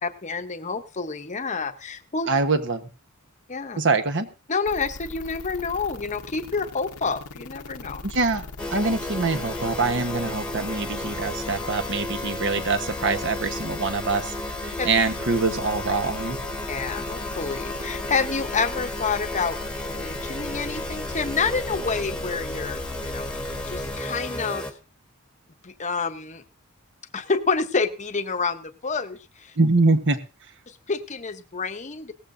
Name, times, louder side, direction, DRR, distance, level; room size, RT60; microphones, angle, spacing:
voice 1, 0.0-2.3 3.5-3.8 4.5-8.0 14.8-14.9 16.7-19.6 19.8-24.7 25.6-26.4 27.1-29.6 30.7-32.1, left 4 dB, 35° left, 9 dB, 0.8 m, -28 dB
voice 2, 2.3-2.9 3.8-4.3 8.0-8.4 8.7-14.3 14.6-16.4 29.6-30.2, right 3 dB, 55° right, 9 dB, 1.2 m, -24 dB
sound 1, 4.7-24.0, left 3 dB, 85° left, 0.9 m, -39 dB
sound 2, 8.6-24.7, left 1 dB, 5° left, 1.3 m, -33 dB
17.5 x 14.5 x 2.6 m, 0.33 s
head